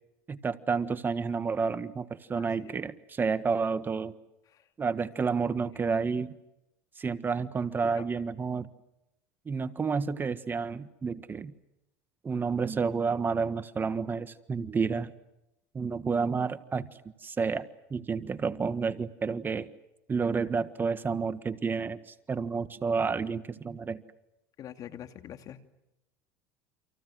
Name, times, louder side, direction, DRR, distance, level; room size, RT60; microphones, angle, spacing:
voice 1, 0.3-4.1 4.8-6.3 7.0-8.7 9.4-11.5 12.2-15.1 15.7-16.9 17.2-19.7 20.1-24.0, right 5 dB, 25° right, 12 dB, 1.5 m, -30 dB
voice 2, 2.3-2.7 4.5-4.6 7.9-8.1 24.6-25.6, left 10 dB, 50° left, 8 dB, 2.6 m, -44 dB
29.5 x 27.0 x 6.3 m, 0.89 s
supercardioid pair, 100°, 8 cm